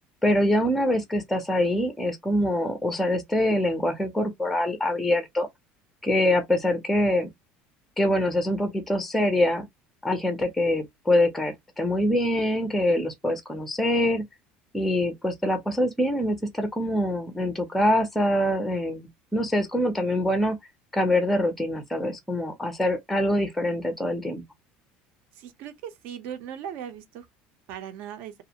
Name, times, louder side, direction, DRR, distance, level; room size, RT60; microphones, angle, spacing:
voice 1, 0.2-5.5 6.0-7.3 8.0-9.7 10.0-14.3 14.7-20.6 20.9-24.4, left 1 dB, 5° left, 0.5 m, -24 dB
voice 2, 25.4-27.3 27.7-28.3, right 9 dB, 60° right, 0.6 m, -38 dB
2.4 x 2.1 x 2.7 m
cardioid pair, 160°, 4 cm